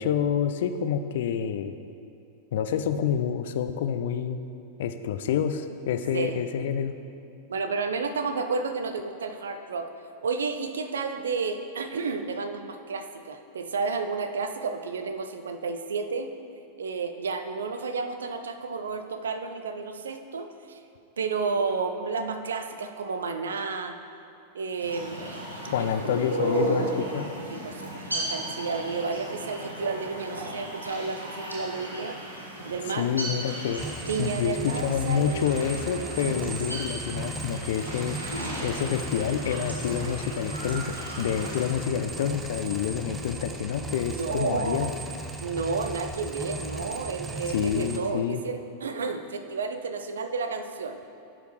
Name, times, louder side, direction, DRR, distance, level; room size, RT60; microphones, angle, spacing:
voice 1, 0.0-1.8 2.5-4.4 4.8-6.9 25.7-27.3 32.9-33.8 34.2-38.2 38.6-44.9 47.5-48.4, left 8 dB, 55° left, 9 dB, 0.3 m, -28 dB
voice 2, 7.5-9.9 10.2-16.3 16.8-20.8 21.2-24.0 24.5-25.2 25.8-25.9 27.5-32.2 32.6-33.1 34.0-36.0 43.9-44.9 45.4-51.0, right 4 dB, 65° right, 8 dB, 0.4 m, -31 dB
sound 1, 24.7-41.8, right 1 dB, 90° right, 1.2 m, -35 dB
sound 2, 33.8-48.0, right 2 dB, 10° right, 0.6 m, -37 dB
11.0 x 5.0 x 3.1 m, 2.6 s
figure-of-eight pair, 90°, 0 cm